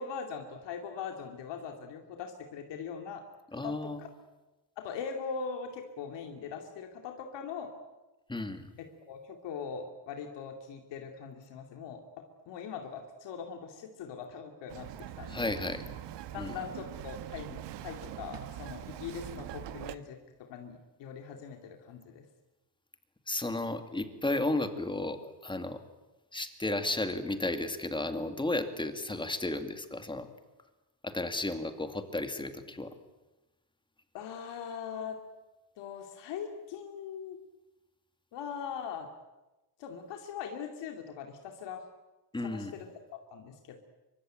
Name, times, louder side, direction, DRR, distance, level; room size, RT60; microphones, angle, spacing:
voice 1, 0.0-3.2 3.5-4.1 4.8-7.7 9.0-15.5 16.3-22.2 34.1-35.2 35.8-37.4 38.3-39.1 39.8-41.9 42.4-43.8, left 6 dB, 85° left, 4 dB, 2.7 m, -41 dB
voice 2, 3.5-4.0 8.3-8.7 15.3-15.9 16.4-16.6 23.3-25.8 26.3-30.3 31.0-32.9 42.3-42.7, left 2 dB, 10° left, 8 dB, 2.4 m, -33 dB
Bird vocalization bird call bird song, 14.7-20.0, right 12 dB, 85° right, 1.4 m, -43 dB
25.0 x 24.0 x 9.1 m, 1.1 s
cardioid pair, 130°, 42 cm